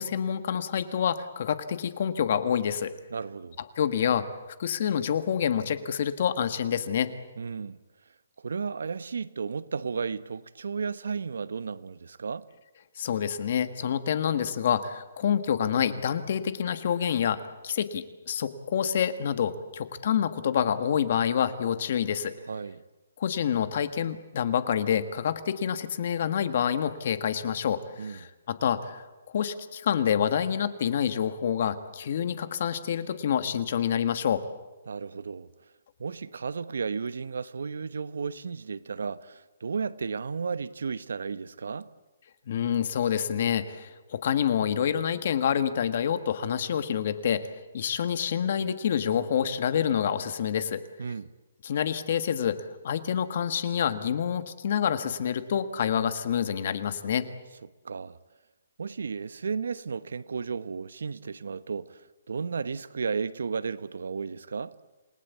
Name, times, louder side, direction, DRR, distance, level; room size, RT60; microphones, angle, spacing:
voice 1, 0.0-2.9 3.8-4.3 4.6-7.1 13.0-22.3 23.2-29.0 29.3-34.4 42.5-47.5 47.7-50.8 51.6-57.3, left 8 dB, 40° left, 1.6 m, -27 dB
voice 2, 3.1-3.6 7.4-7.8 8.4-12.5 22.5-22.8 28.0-28.3 34.9-35.5 36.0-41.9 51.0-51.3 57.8-58.2 58.8-64.7, right 5 dB, 80° right, 1.0 m, -33 dB
28.0 x 19.5 x 8.4 m
hypercardioid pair, 175°, 0 cm